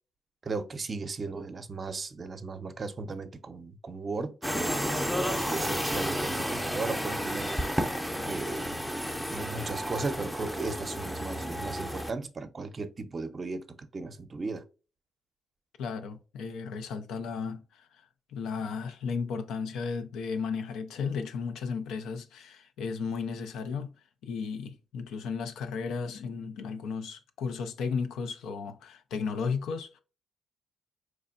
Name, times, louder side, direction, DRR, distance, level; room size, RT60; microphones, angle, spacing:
voice 1, 0.4-7.5 8.3-8.8 9.3-14.6, right 3 dB, 40° right, 0.6 m, -36 dB
sound 1, 4.4-12.1, equal, 5° left, 0.5 m, -32 dB
voice 2, 15.8-17.9 18.3-23.9 24.2-30.0, left 5 dB, 85° left, 0.5 m, -34 dB
4.1 x 3.2 x 2.4 m
cardioid pair, 70°, 0 cm